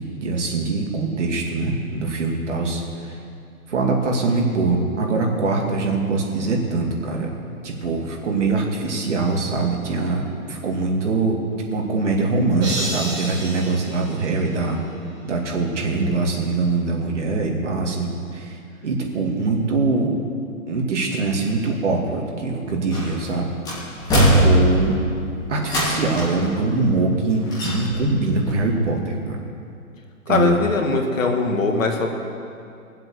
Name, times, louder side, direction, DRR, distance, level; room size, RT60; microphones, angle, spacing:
voice 1, 0.0-3.2 3.7-7.3 7.6-10.2 10.5-11.4 11.7-14.8 15.2-20.1 20.7-23.5 24.1-25.0 25.5-29.4 30.3-30.6, right 3 dB, 55° right, 0 dB, 2.5 m, -23 dB
sound 1, 12.6-14.9, right 1 dB, 30° right, 3.9 m, -31 dB
sound 2, 22.9-23.3 23.7-25.0 25.6-26.4 27.5-28.2 28.5-28.6, equal, 10° left, 2.1 m, -20 dB
voice 2, 30.3-32.1, left 4 dB, 60° left, 3 dB, 2.0 m, -20 dB
20.0 x 7.7 x 6.4 m, 2.5 s
hypercardioid pair, 165°, 43 cm